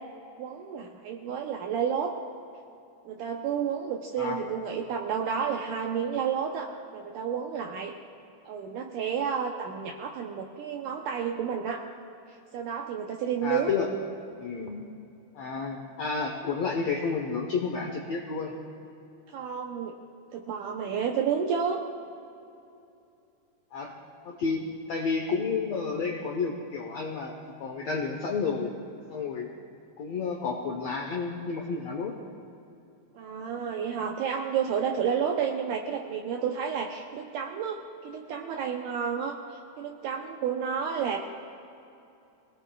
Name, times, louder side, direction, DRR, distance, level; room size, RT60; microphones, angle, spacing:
voice 1, 0.4-2.2 3.1-7.9 8.5-11.8 12.5-13.8 19.3-19.9 20.3-21.8 33.2-41.2, right 7 dB, 80° right, 2 dB, 1.9 m, -31 dB
voice 2, 13.4-13.9 14.4-14.8 15.3-18.5 23.7-23.9 24.2-27.3 27.6-28.8 29.1-29.5 30.0-32.1, left 5 dB, 75° left, 1 dB, 1.5 m, -31 dB
23.0 x 18.0 x 2.3 m, 2.7 s
omnidirectional pair, 4.4 m